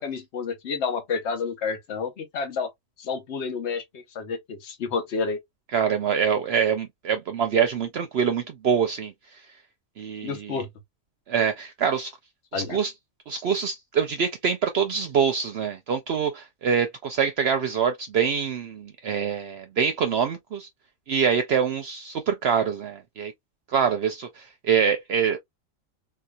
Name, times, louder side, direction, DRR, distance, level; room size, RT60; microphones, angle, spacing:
voice 1, 0.0-2.7 3.0-5.4 10.2-10.7 12.5-12.8, left 5 dB, 60° left, 1.2 m, -30 dB
voice 2, 5.7-9.4 10.0-10.6 11.3-12.1 12.5-12.9 13.3-20.7 21.1-23.3 23.7-25.4, right 7 dB, 60° right, 0.7 m, -25 dB
3.9 x 2.8 x 2.3 m
omnidirectional pair, 1.4 m